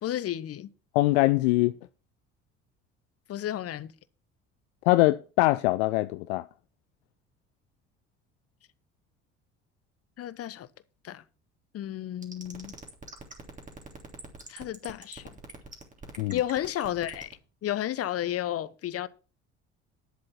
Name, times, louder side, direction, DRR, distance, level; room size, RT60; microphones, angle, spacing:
voice 1, 0.0-0.7 3.3-3.9 10.2-10.7 11.0-11.2 11.7-12.7 14.5-15.3 16.3-19.1, left 12 dB, 45° left, 1.0 m, -32 dB
voice 2, 0.9-1.7 4.9-6.4 16.2-16.4, left 19 dB, 70° left, 0.5 m, -23 dB
sound 1, 12.2-17.3, right 3 dB, 20° right, 3.3 m, -43 dB
10.5 x 7.5 x 5.9 m
hypercardioid pair, 60°, 34 cm